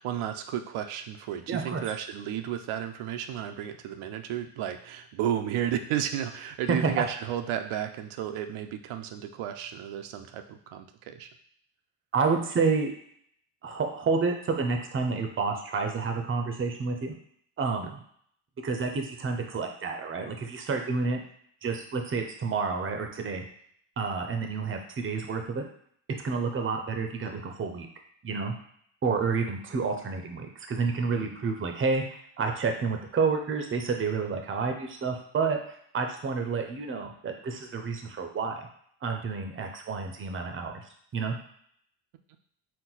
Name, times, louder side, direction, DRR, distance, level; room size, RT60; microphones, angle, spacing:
voice 1, 0.0-11.3, right 10 dB, 85° right, 7 dB, 0.5 m, -33 dB
voice 2, 1.5-1.8 6.7-7.0 12.1-12.9 13.6-17.1 17.6-17.9 18.6-21.2 21.6-23.4 24.0-25.7 26.2-27.9 28.2-28.5 29.0-32.0 32.4-38.7 39.0-40.8 41.1-41.4, right 4 dB, 25° right, 4 dB, 0.5 m, -29 dB
4.4 x 2.1 x 3.9 m, 0.65 s
cardioid pair, 120°, 48 cm